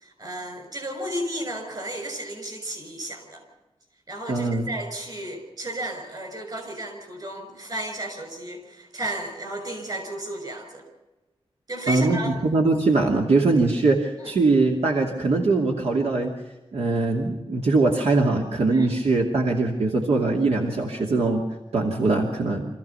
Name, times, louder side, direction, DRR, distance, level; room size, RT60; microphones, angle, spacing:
voice 1, 0.0-3.4 4.1-10.8 11.7-12.4 14.2-14.3 18.7-18.9, right 1 dB, 40° right, 5 dB, 6.6 m, -33 dB
voice 2, 4.3-4.7 11.9-16.3 16.7-21.4 21.7-22.6, right 3 dB, 80° right, 0 dB, 2.6 m, -22 dB
26.5 x 15.0 x 7.0 m, 1.1 s
wide cardioid pair, 160°, 11 cm